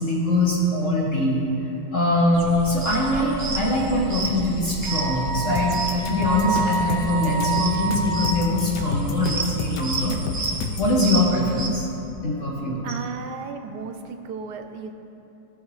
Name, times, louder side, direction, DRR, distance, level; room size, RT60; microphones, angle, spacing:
voice 1, 0.0-1.4 1.9-10.2 10.8-11.8 12.2-12.8, left 1 dB, 45° left, -4 dB, 1.5 m, -22 dB
sound 1, 2.3-11.7, right 2 dB, 30° right, 0.8 m, -31 dB
Wind instrument woodwind instrument, 4.9-8.7, right 3 dB, 20° left, 0.8 m, -28 dB
sound 2, 5.6-10.9, left 4 dB, 75° left, 1.3 m, -31 dB
voice 2, 12.8-14.9, right 5 dB, 70° right, 6 dB, 1.2 m, -34 dB
15.0 x 6.2 x 3.2 m, 2.9 s
omnidirectional pair, 1.9 m